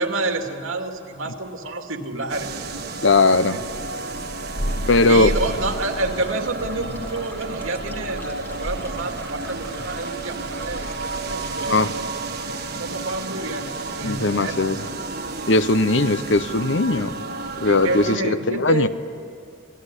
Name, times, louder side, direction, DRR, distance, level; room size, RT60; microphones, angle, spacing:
voice 1, 0.0-2.7 3.5-3.7 5.1-12.5 12.8-14.8 17.6-18.9, right 2 dB, 80° right, 4 dB, 2.7 m, -29 dB
sound 1, 2.3-18.2, right 3 dB, 50° right, 1.4 m, -32 dB
voice 2, 3.0-3.6 4.9-5.3 11.6-11.9 14.0-14.8 15.5-17.1 17.6-18.9, left 2 dB, 60° left, 13 dB, 0.9 m, -19 dB
Thunder, 3.6-12.0, equal, 75° left, 3.5 m, -34 dB
sound 2, 6.1-11.7, left 1 dB, 10° left, 1.5 m, -43 dB
26.5 x 20.5 x 10.0 m, 2.3 s
head